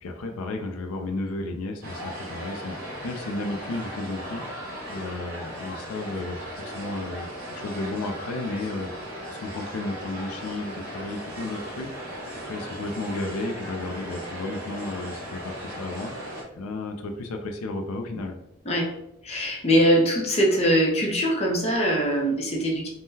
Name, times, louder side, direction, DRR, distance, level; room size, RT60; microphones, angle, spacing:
voice 1, 0.0-2.8 3.0-4.4 4.9-8.9 9.3-11.9 12.3-16.1 16.5-18.4, left 2 dB, 80° left, 4 dB, 0.4 m, -33 dB
sound 1, 1.8-16.4, equal, 45° right, 1.2 m, -37 dB
voice 2, 19.2-22.9, equal, 30° left, -1 dB, 0.6 m, -22 dB
3.6 x 2.1 x 2.7 m, 0.83 s
head